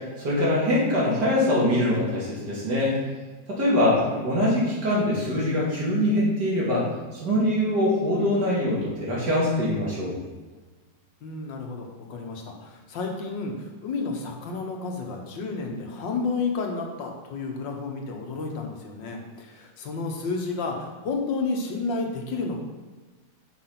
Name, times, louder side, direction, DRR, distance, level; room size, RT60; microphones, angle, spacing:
voice 1, 0.2-3.0 3.5-6.8 7.2-10.1, left 1 dB, 65° right, -5 dB, 3.0 m, -23 dB
voice 2, 3.9-4.3 11.2-22.6, left 4 dB, 85° left, 2 dB, 1.9 m, -31 dB
6.0 x 6.0 x 5.8 m, 1.3 s
omnidirectional pair, 2.0 m